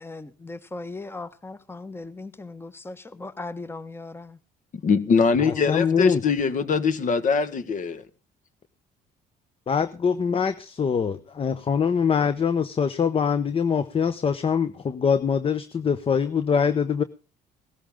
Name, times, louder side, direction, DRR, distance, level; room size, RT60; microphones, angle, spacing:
voice 1, 0.0-4.4 5.5-6.1, left 3 dB, 15° left, 1.3 m, -38 dB
voice 2, 4.8-8.0, left 5 dB, 50° left, 1.6 m, -22 dB
voice 3, 5.4-6.2 9.7-17.0, left 6 dB, 35° left, 1.0 m, -23 dB
17.0 x 13.5 x 3.7 m
cardioid pair, 110°, 17 cm